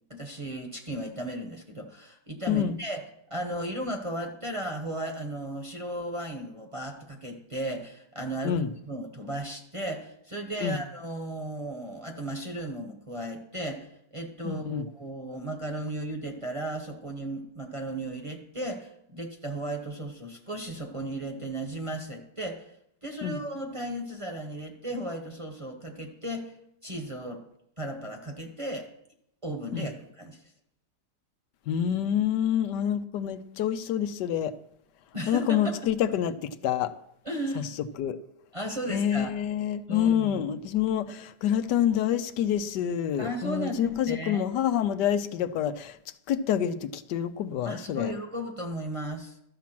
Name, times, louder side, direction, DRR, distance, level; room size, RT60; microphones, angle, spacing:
voice 1, 0.1-3.0 3.3-22.8 23.0-26.5 26.8-27.4 27.8-28.9 29.4-30.4 35.1-35.8 37.2-37.7 38.5-39.3 39.9-40.4 43.2-44.4 47.6-49.4, right 1 dB, 20° right, 1 dB, 1.0 m, -35 dB
voice 2, 2.5-2.8 8.4-8.7 10.6-10.8 14.4-14.8 23.2-23.4 29.7-29.9 31.7-34.5 35.3-36.9 38.0-38.2 38.9-46.0 46.3-48.1, left 9 dB, 80° left, 11 dB, 1.2 m, -27 dB
12.5 x 7.3 x 5.9 m, 0.75 s
omnidirectional pair, 1.8 m